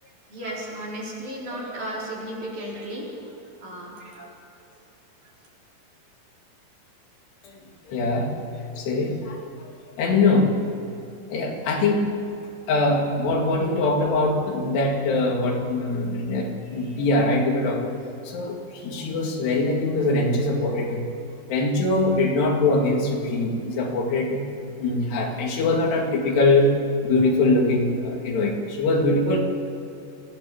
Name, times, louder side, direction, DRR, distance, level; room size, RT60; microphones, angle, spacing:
voice 1, 0.0-3.3 3.6-4.3 5.2-5.3, right 1 dB, 45° right, -5 dB, 6.0 m, -35 dB
voice 2, 7.9-9.4 10.0-10.7 11.3-12.2 12.7-18.0 18.2-21.1 21.5-24.5 24.8-26.8 27.0-29.4, left 2 dB, 75° left, 1 dB, 4.4 m, -22 dB
25.0 x 16.5 x 7.2 m, 2.9 s
omnidirectional pair, 4.8 m